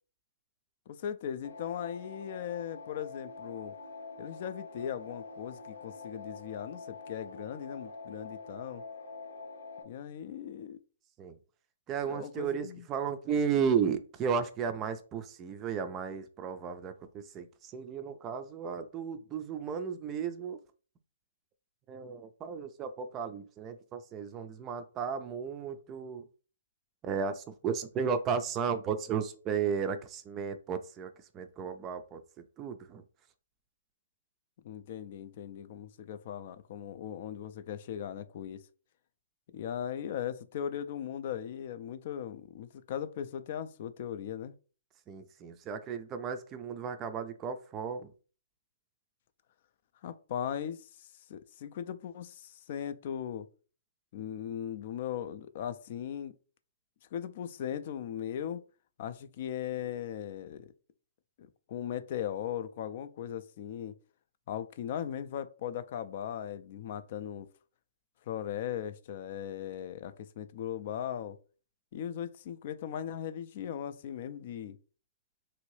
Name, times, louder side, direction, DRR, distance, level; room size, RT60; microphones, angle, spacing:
voice 1, 0.9-3.7 4.2-8.8 9.8-10.8 12.1-12.8 34.6-38.6 39.5-44.5 50.0-53.5 54.1-56.3 57.1-58.6 59.0-60.7 61.4-63.9 64.5-67.5 68.3-71.4 71.9-74.8, left 9 dB, 50° left, 0.3 m, -38 dB
sound 1, 1.4-9.8, left 3 dB, 85° left, 0.8 m, -46 dB
voice 2, 11.9-20.6 21.9-26.3 27.0-32.2 32.6-33.0 45.1-48.1, right 6 dB, 25° right, 0.4 m, -34 dB
3.0 x 2.6 x 3.1 m
hypercardioid pair, 140°, 0 cm